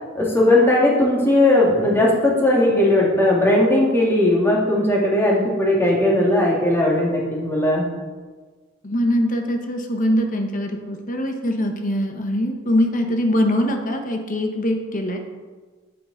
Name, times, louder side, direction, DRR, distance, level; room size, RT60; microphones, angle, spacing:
voice 1, 0.2-7.9, left 1 dB, 10° left, -3 dB, 2.0 m, -18 dB
voice 2, 8.8-15.2, equal, 40° left, 4 dB, 1.0 m, -22 dB
8.8 x 8.4 x 3.9 m, 1.4 s
head